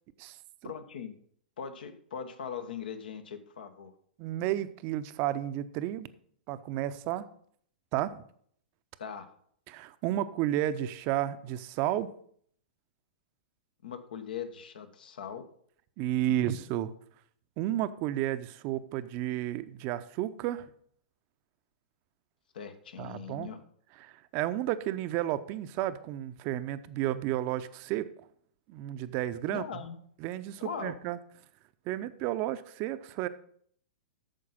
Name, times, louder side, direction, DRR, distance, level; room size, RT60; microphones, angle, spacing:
voice 1, 0.6-1.2 1.6-3.9 9.0-9.3 13.8-15.5 16.3-16.6 22.5-23.6 29.5-30.0 30.6-30.9, left 7 dB, 70° left, 8 dB, 1.2 m, -40 dB
voice 2, 4.2-6.1 6.5-7.3 7.9-8.2 9.7-12.1 16.0-16.9 17.6-20.6 23.0-23.5 24.0-28.1 28.7-29.6 30.2-31.2 31.9-33.3, right 13 dB, 40° right, 13 dB, 0.6 m, -32 dB
8.9 x 6.7 x 5.5 m, 0.62 s
hypercardioid pair, 110°, 5 cm